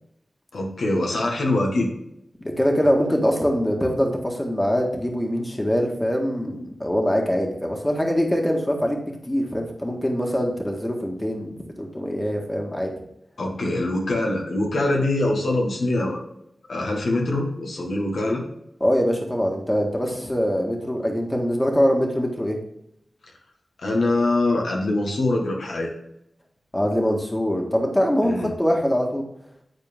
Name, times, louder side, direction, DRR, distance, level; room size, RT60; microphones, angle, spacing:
voice 1, 0.5-1.9 13.4-16.2 16.7-18.4 23.8-25.9 28.2-28.5, left 2 dB, 90° left, 0 dB, 1.6 m, -23 dB
voice 2, 2.4-12.9 18.8-22.6 26.7-29.2, equal, 15° left, 1 dB, 1.6 m, -23 dB
9.7 x 4.4 x 3.6 m, 0.78 s
wide cardioid pair, 65°, 0 cm